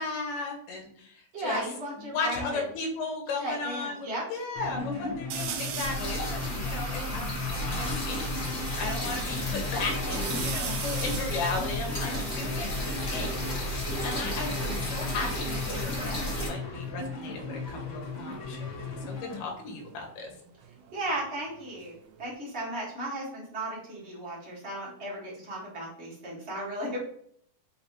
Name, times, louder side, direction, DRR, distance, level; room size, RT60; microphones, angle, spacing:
voice 1, 0.0-1.6 2.0-8.2 8.8-20.3, left 3 dB, 80° left, 1 dB, 2.4 m, -36 dB
voice 2, 1.3-2.6 3.4-4.2 4.7-5.1 20.9-27.0, right 1 dB, 55° right, -6 dB, 0.7 m, -35 dB
sound 1, 4.6-19.4, left 4 dB, 65° left, 1.5 m, -37 dB
sound 2, 5.3-6.1 6.7-6.8 7.0-8.5 9.0-9.6 10.0-13.4 14.3-16.3 16.5-17.0 18.6-21.2 21.6-22.4, right 8 dB, 80° right, 2.2 m, -41 dB
sound 3, 5.8-16.5, equal, 35° left, 1.4 m, -33 dB
5.5 x 3.2 x 2.9 m, 0.66 s
omnidirectional pair, 3.8 m